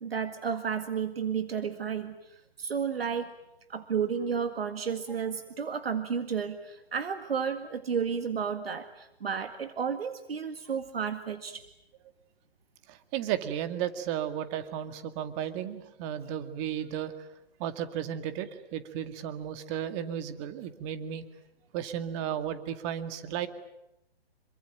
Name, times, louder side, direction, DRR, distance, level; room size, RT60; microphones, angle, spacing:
voice 1, 0.0-2.1 2.6-3.3 3.7-11.6, right 7 dB, 70° right, 9 dB, 2.0 m, -32 dB
voice 2, 12.9-17.1 17.6-21.2 21.7-23.5, right 10 dB, 30° right, 10 dB, 2.2 m, -34 dB
27.0 x 23.5 x 9.1 m, 0.86 s
hypercardioid pair, 135°, 31 cm